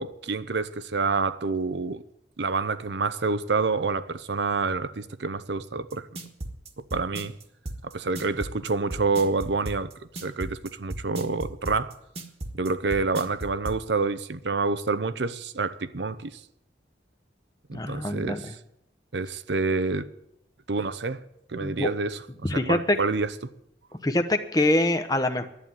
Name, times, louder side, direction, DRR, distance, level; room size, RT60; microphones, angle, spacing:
voice 1, 0.0-2.0 2.4-6.1 6.9-7.3 7.8-9.9 10.2-11.9 12.5-16.4 17.7-18.6 19.1-20.1 20.7-21.2 21.5-23.5, right 4 dB, 75° right, 0.8 m, -28 dB
sound 1, 5.9-13.8, right 1 dB, 35° right, 1.4 m, -35 dB
voice 2, 17.7-18.5 21.6-21.9 22.4-23.0 24.0-25.5, left 1 dB, 20° left, 0.8 m, -24 dB
11.5 x 9.1 x 9.8 m
head